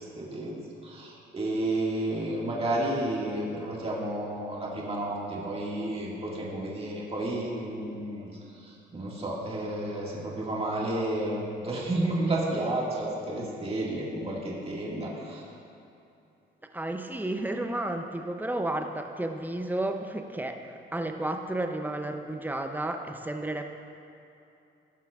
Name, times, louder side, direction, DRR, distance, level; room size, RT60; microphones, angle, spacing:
voice 1, 0.0-15.4, right 1 dB, 30° right, -5 dB, 1.9 m, -31 dB
voice 2, 16.7-23.6, right 1 dB, 10° right, 5 dB, 0.6 m, -32 dB
16.0 x 5.8 x 2.4 m, 2.7 s
cardioid pair, 90°, 20 cm